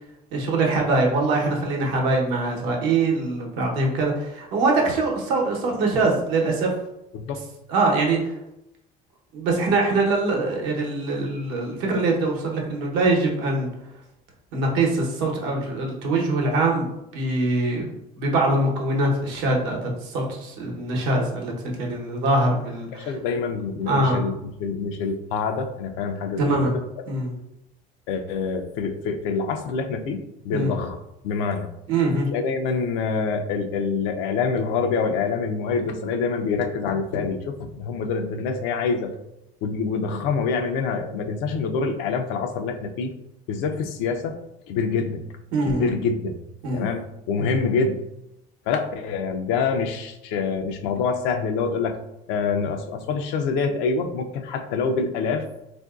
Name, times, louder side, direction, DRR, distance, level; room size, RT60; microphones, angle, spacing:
voice 1, 0.3-6.7 7.7-8.3 9.3-13.7 14.5-17.9 18.2-23.1 23.9-24.2 26.4-26.7 27.1-27.3 30.5-30.7 31.9-32.3 45.5-45.9 46.6-46.8, right 2 dB, 85° right, -1 dB, 0.8 m, -23 dB
voice 2, 22.9-26.8 28.1-31.0 31.2-31.7 32.3-39.1 39.6-43.1 43.5-44.4 44.7-45.2 45.7-46.3 46.7-48.0 48.7-52.0 52.3-55.5, left 5 dB, 85° left, 6 dB, 0.4 m, -26 dB
3.7 x 2.6 x 2.3 m, 0.87 s
supercardioid pair, 100°, 19 cm